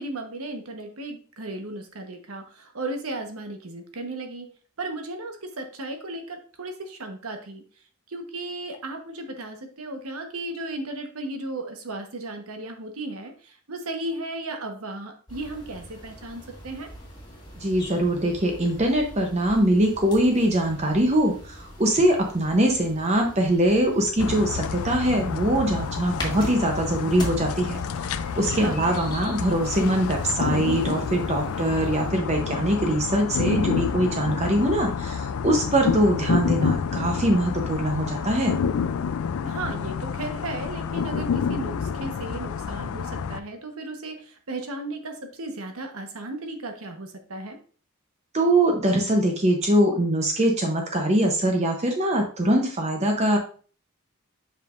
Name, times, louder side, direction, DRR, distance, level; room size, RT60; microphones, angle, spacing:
voice 1, 0.0-4.5 4.8-7.6 8.1-16.9 28.5-29.0 39.4-47.6, right 2 dB, 80° right, 5 dB, 1.1 m, -35 dB
sound 1, 15.3-32.1, left 1 dB, 20° left, 1.4 m, -41 dB
voice 2, 17.6-38.5 48.3-53.4, right 1 dB, 30° right, 2 dB, 0.7 m, -23 dB
sound 2, 24.2-43.4, left 6 dB, 80° left, 0.4 m, -29 dB
7.4 x 5.3 x 2.5 m, 0.41 s
head